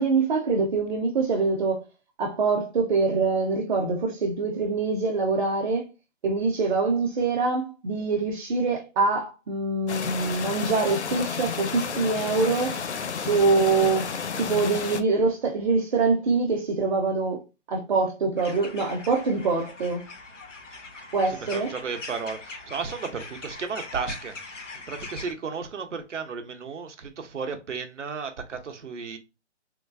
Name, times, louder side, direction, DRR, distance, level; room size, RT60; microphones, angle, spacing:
voice 1, 0.0-1.8 2.2-5.9 6.2-12.8 13.2-14.1 14.4-17.4 17.7-20.0 21.1-21.7, right 4 dB, 40° right, 0.8 m, -24 dB
sound 1, 9.9-15.0, left 6 dB, 70° left, 0.6 m, -31 dB
sound 2, 18.4-25.3, left 3 dB, 85° left, 1.0 m, -41 dB
voice 2, 21.3-24.4 24.9-29.2, right 5 dB, 80° right, 0.9 m, -34 dB
3.7 x 2.2 x 2.4 m
hypercardioid pair, 150°, 36 cm